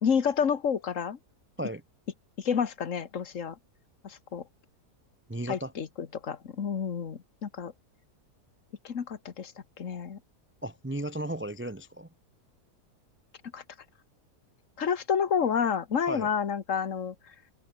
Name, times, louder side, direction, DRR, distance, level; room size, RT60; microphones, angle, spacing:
voice 1, 0.0-1.2 2.4-3.6 4.0-4.4 5.5-7.7 8.8-9.5 9.8-10.2 13.5-13.6 14.8-17.2, left 7 dB, 55° left, 1.7 m, -29 dB
voice 2, 5.3-5.7 10.6-12.1 16.1-16.3, right 1 dB, 10° right, 0.5 m, -35 dB
open air
omnidirectional pair, 1.7 m